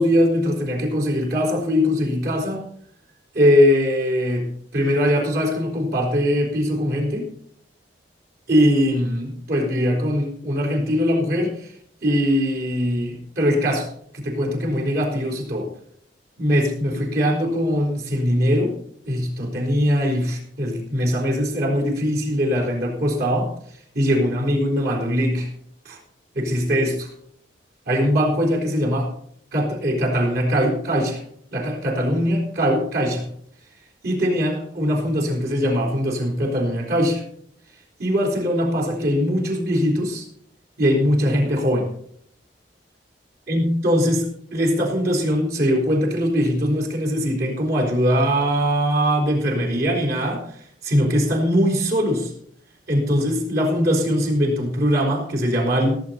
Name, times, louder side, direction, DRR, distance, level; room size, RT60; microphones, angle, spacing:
voice 1, 0.0-2.6 3.3-7.3 8.5-11.7 12.0-13.9 14.1-15.7 16.4-18.8 19.1-23.5 23.9-25.5 25.8-26.0 26.3-27.1 27.9-29.1 29.5-31.2 31.5-33.3 34.0-37.2 38.0-40.2 40.8-41.9 43.5-50.6 50.8-52.3 52.9-56.0, equal, 60° right, 0 dB, 4.2 m, -21 dB
18.0 x 8.2 x 4.4 m, 0.65 s
head